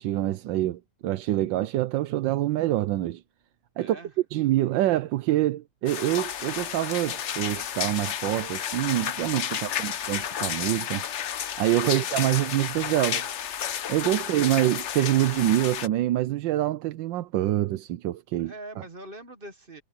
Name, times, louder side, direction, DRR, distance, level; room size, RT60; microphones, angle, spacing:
voice 1, 0.0-3.2 3.8-4.0 4.3-11.0 11.6-13.2 13.9-18.5, right 14 dB, 80° right, 1.4 m, -26 dB
voice 2, 3.8-4.1 9.5-10.0 11.9-12.1 14.2-14.3 18.4-19.8, right 2 dB, 30° right, 1.3 m, -44 dB
sound 1, 5.9-15.9, left 9 dB, 55° left, 0.8 m, -32 dB
omnidirectional pair, 2.0 m